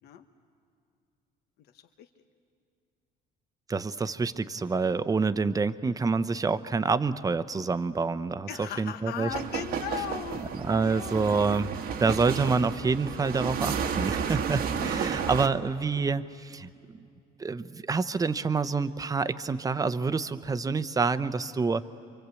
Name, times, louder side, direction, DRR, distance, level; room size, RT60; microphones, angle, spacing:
voice 1, 1.6-2.1 8.5-11.4 12.4-12.6 14.7-15.3, left 10 dB, 75° left, 7 dB, 1.2 m, -39 dB
voice 2, 3.7-9.3 10.6-17.0 17.4-21.8, right 4 dB, 20° right, 13 dB, 0.8 m, -27 dB
sound 1, 9.3-15.5, right 7 dB, 65° right, 1.3 m, -32 dB
27.5 x 24.5 x 8.3 m, 2.3 s
cardioid pair, 110°, 17 cm